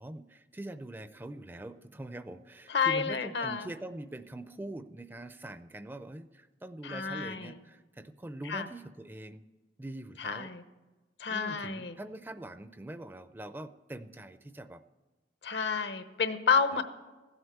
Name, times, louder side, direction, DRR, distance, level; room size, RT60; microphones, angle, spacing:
voice 1, 0.0-9.4 9.8-10.5 11.3-14.8 16.7-16.8, right 1 dB, 10° right, 11 dB, 0.4 m, -43 dB
voice 2, 2.7-3.7 6.8-7.6 8.5-8.7 10.2-10.6 11.2-11.9 15.4-16.8, left 5 dB, 75° left, 10 dB, 0.9 m, -30 dB
15.5 x 8.0 x 7.8 m, 1.2 s
head